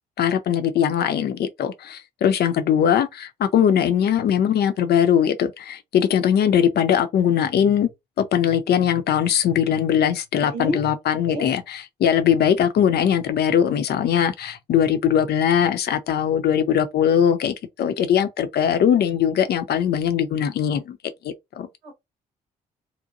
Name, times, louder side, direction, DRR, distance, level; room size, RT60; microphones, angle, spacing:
voice 1, 0.2-7.9 8.2-21.0 21.2-21.7, left 9 dB, 50° left, 0.5 m, -20 dB
voice 2, 10.4-10.8 11.3-11.5 21.8-21.9, equal, 85° right, 0.8 m, -30 dB
2.9 x 2.1 x 2.5 m
hypercardioid pair, 40°, 21 cm